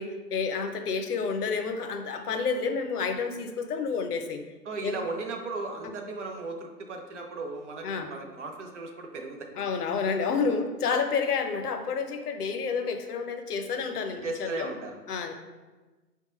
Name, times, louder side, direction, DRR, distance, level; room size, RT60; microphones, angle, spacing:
voice 1, 0.0-4.4 4.8-5.0 7.8-8.1 9.6-14.7 15.1-15.4, left 5 dB, 65° left, 6 dB, 0.6 m, -29 dB
voice 2, 4.7-9.5 14.2-15.0, right 3 dB, 45° right, 3 dB, 0.6 m, -36 dB
5.5 x 2.2 x 3.0 m, 1.3 s
hypercardioid pair, 145°, 50 cm